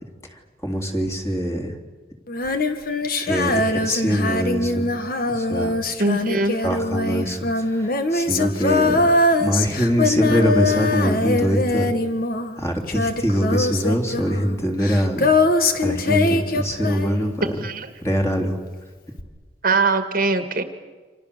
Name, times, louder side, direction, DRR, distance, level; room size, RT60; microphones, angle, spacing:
voice 1, 0.3-1.7 3.3-4.9 5.3-5.8 6.6-9.1 9.4-11.9 12.6-15.3 15.8-17.6 18.0-18.6, equal, 15° left, 1 dB, 3.3 m, -23 dB
Female singing, 2.3-17.6 19.2-19.3, left 2 dB, 50° left, 1.9 m, -22 dB
voice 2, 6.0-6.6 17.4-17.9 19.6-20.6, right 3 dB, 50° right, 8 dB, 1.7 m, -21 dB
29.5 x 26.5 x 7.0 m, 1.4 s
head